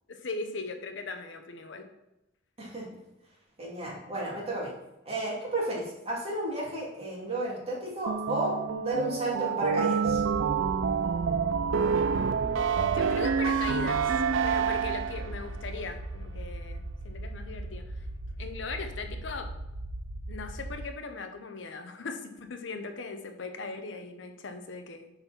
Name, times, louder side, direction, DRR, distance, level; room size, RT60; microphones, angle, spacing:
voice 1, 0.1-1.9 12.1-14.1 14.4-18.1 18.4-19.5 20.3-25.1, left 4 dB, 70° left, 6 dB, 0.8 m, -39 dB
voice 2, 3.6-4.7 5.1-10.2, right 1 dB, 35° right, -4 dB, 2.5 m, -32 dB
sound 1, 8.1-15.3, right 6 dB, 90° right, 0.4 m, -27 dB
sound 2, 10.1-20.9, right 1 dB, 50° right, 0.7 m, -39 dB
8.0 x 4.2 x 5.8 m, 0.92 s
head